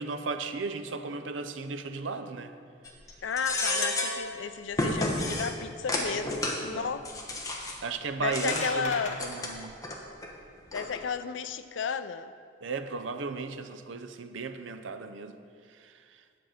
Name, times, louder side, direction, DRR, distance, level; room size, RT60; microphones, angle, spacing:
voice 1, 0.0-2.6 6.1-6.9 7.8-9.7 12.6-15.4 15.6-16.2, right 4 dB, 85° right, 8 dB, 0.6 m, -36 dB
sound 1, 2.8-3.1 3.4-4.2 4.7-5.5 5.9-6.6 7.0-7.8 8.3-8.6 9.1-10.0 10.2-10.3 10.7-11.0, left 2 dB, 20° left, 1.0 m, -31 dB
voice 2, 3.2-7.1 8.2-9.2 10.7-12.3, left 6 dB, 80° left, 11 dB, 0.5 m, -33 dB
sound 2, 8.1-9.2, left 3 dB, 40° left, 1.0 m, -37 dB
9.8 x 7.6 x 5.0 m, 2.2 s
head